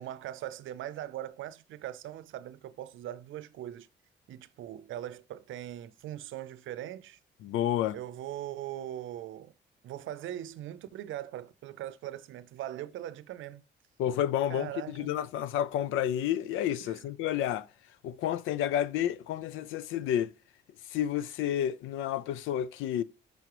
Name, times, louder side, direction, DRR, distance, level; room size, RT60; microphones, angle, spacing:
voice 1, 0.0-3.9 4.3-7.2 7.9-9.5 9.8-13.6 14.5-15.1 16.8-17.1, right 12 dB, 75° right, 0.6 m, -40 dB
voice 2, 7.4-8.0 14.0-17.7 18.0-20.3 20.9-23.0, left 11 dB, 90° left, 0.5 m, -30 dB
5.9 x 5.4 x 3.0 m
cardioid pair, 90°, 20 cm